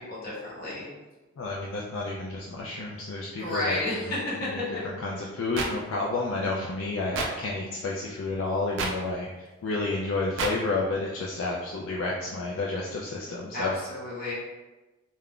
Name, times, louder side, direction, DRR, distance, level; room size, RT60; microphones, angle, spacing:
voice 1, 0.1-0.9 3.4-4.2 4.7-4.8 13.5-14.3, left 1 dB, 50° left, -7 dB, 1.0 m, -31 dB
voice 2, 1.4-4.1 4.4-13.7, left 3 dB, 70° left, -3 dB, 0.4 m, -31 dB
sound 1, 5.6-5.7 7.1-7.3 8.8-8.9 10.4-10.5, right 3 dB, 65° right, 0.4 m, -28 dB
2.3 x 2.1 x 3.5 m, 1.1 s
head